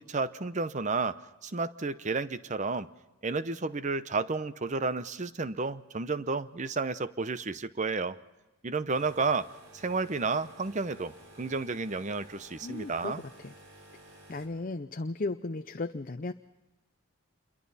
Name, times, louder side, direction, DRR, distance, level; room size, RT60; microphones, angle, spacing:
voice 1, 0.0-2.9 3.2-8.2 8.6-9.5 9.7-13.2, right 4 dB, 35° right, 13 dB, 0.7 m, -31 dB
sound 1, 8.9-14.5, right 1 dB, 60° right, 5.3 m, -53 dB
voice 2, 12.6-13.5 14.3-16.3, left 3 dB, 40° left, 7 dB, 0.6 m, -35 dB
27.5 x 23.0 x 4.1 m, 1.1 s
head